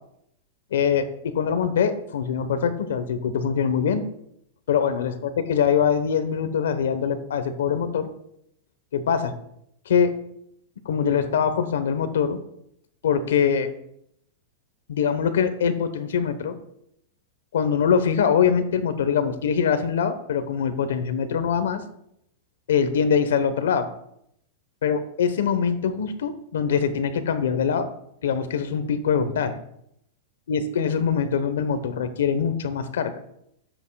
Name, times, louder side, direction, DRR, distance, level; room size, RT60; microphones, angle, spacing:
voice 1, 0.7-4.0 4.7-8.1 8.9-9.3 9.9-10.1 10.8-12.4 13.0-13.7 14.9-16.6 17.5-21.8 22.7-23.9 24.8-27.9 28.2-29.6 30.5-33.1, left 7 dB, 90° left, 10 dB, 1.0 m, -23 dB
14.0 x 8.1 x 2.3 m, 0.74 s
supercardioid pair, 150°, 0 cm